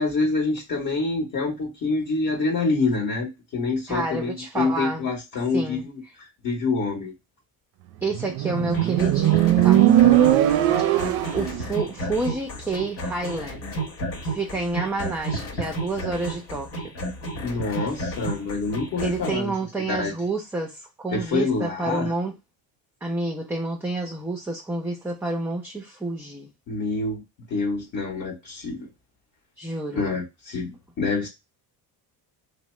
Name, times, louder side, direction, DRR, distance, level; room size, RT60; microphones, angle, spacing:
voice 1, 0.0-7.1 10.7-10.9 17.4-19.5 19.9-20.1 21.1-22.1 26.7-27.2 27.5-28.8 29.9-30.7 31.0-31.3, left 3 dB, 45° left, 1.1 m, -26 dB
voice 2, 3.9-5.0 5.5-5.9 8.0-9.8 11.3-13.7 14.2-16.7 19.0-22.3 23.0-26.5 29.6-30.2, right 2 dB, 5° right, 0.4 m, -29 dB
Motorcycle, 8.1-11.6, right 12 dB, 60° right, 0.5 m, -19 dB
sound 1, 8.7-19.3, right 1 dB, 70° left, 1.1 m, -32 dB
2.8 x 2.1 x 3.0 m
supercardioid pair, 100°, 43 cm